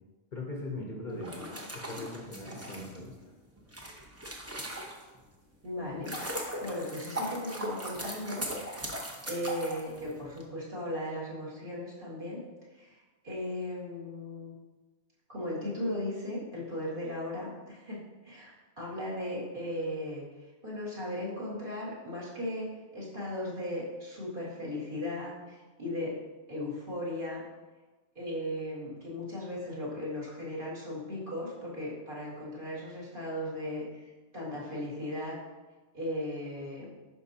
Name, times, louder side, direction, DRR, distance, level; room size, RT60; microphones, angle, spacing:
voice 1, 0.3-1.4 1.7-3.3, left 2 dB, 45° left, -1 dB, 0.9 m, -40 dB
voice 2, 1.0-1.6 5.6-8.5 9.3-12.4 12.7-14.5 15.3-26.2 26.5-27.4 28.2-35.4 35.9-36.9, left 1 dB, 45° right, -6 dB, 2.1 m, -37 dB
sound 1, 1.1-5.2 5.7-10.4, equal, 15° right, 0.7 m, -39 dB
11.0 x 4.6 x 2.8 m, 1.2 s
omnidirectional pair, 1.2 m